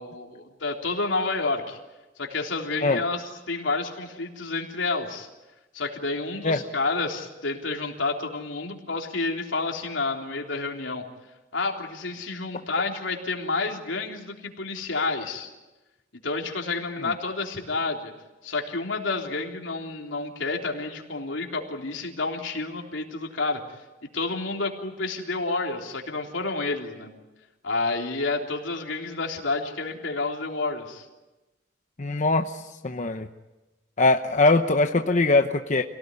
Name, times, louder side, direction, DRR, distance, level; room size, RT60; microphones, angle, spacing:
voice 1, 0.0-1.8 2.2-5.3 5.7-11.0 11.5-15.5 16.2-18.1 18.4-23.6 24.1-27.1 27.6-31.1, left 3 dB, 85° left, 1 dB, 3.6 m, -29 dB
voice 2, 32.0-33.3 34.0-35.8, left 2 dB, 40° left, 5 dB, 0.9 m, -22 dB
27.5 x 18.0 x 9.8 m, 1.1 s
head